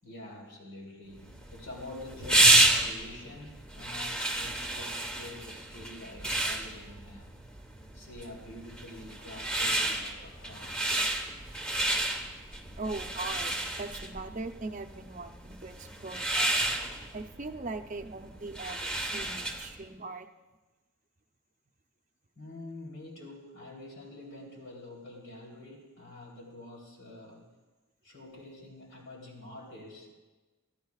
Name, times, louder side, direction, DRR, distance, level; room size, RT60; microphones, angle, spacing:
voice 1, 0.0-7.3 7.9-10.8 12.1-12.6 22.4-27.5 28.0-30.1, left 1 dB, 55° left, -2 dB, 3.5 m, -47 dB
sound 1, 1.2-19.8, right 1 dB, 5° left, 1.2 m, -30 dB
voice 2, 12.8-16.6 17.1-20.3, right 3 dB, 35° right, 6 dB, 0.7 m, -40 dB
24.5 x 14.5 x 2.4 m, 1.2 s
head